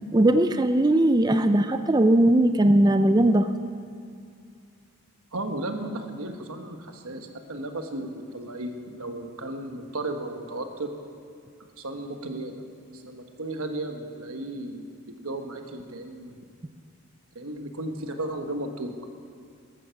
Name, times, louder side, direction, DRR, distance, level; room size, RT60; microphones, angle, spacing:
voice 1, 0.1-3.5, right 1 dB, 20° right, 9 dB, 0.4 m, -19 dB
voice 2, 5.3-10.9 11.8-12.6 12.9-16.4 17.3-18.9, right 1 dB, 75° right, 5 dB, 1.3 m, -34 dB
14.0 x 13.5 x 5.8 m, 2.2 s
head